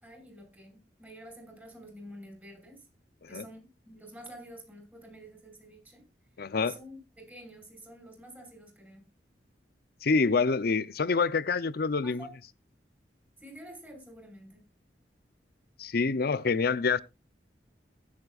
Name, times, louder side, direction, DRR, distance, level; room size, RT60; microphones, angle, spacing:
voice 1, 0.0-2.9 3.3-6.0 6.6-9.1 12.0-12.3 13.4-14.7 16.3-16.4, right 1 dB, 10° right, 5.3 m, -49 dB
voice 2, 6.4-6.7 10.0-12.3 15.8-17.0, left 4 dB, 60° left, 0.7 m, -26 dB
21.5 x 7.4 x 2.4 m
head